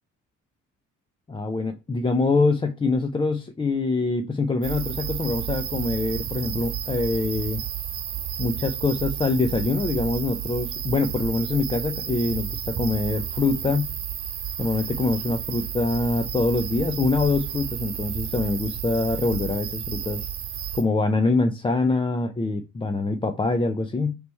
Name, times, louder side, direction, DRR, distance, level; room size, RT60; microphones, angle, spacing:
voice 1, 1.3-7.6 8.4-13.9 14.6-20.3 20.7-24.2, left 3 dB, 15° left, 0.4 m, -24 dB
sound 1, 4.6-20.8, right 9 dB, 75° right, 1.2 m, -32 dB
3.3 x 3.1 x 4.1 m
cardioid pair, 90°, 30 cm